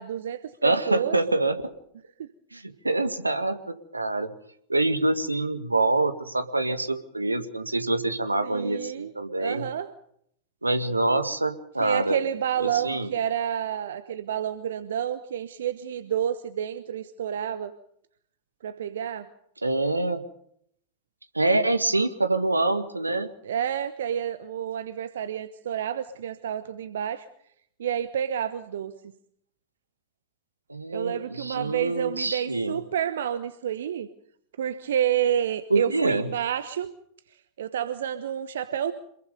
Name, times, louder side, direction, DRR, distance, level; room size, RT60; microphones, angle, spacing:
voice 1, 0.0-1.2 2.2-2.3 8.4-9.1 9.4-9.9 11.8-17.7 18.6-19.3 23.4-27.3 27.8-29.1 30.9-34.1 34.6-36.9 37.6-38.9, right 9 dB, 60° right, 12 dB, 1.1 m, -29 dB
voice 2, 0.6-1.6 2.5-4.3 4.7-9.7 10.6-12.2 12.6-13.1 19.6-20.2 21.3-23.3 30.7-32.7 35.7-36.3, right 2 dB, 85° right, 10 dB, 1.9 m, -25 dB
27.0 x 22.0 x 5.3 m, 0.69 s
figure-of-eight pair, 90°, 0 cm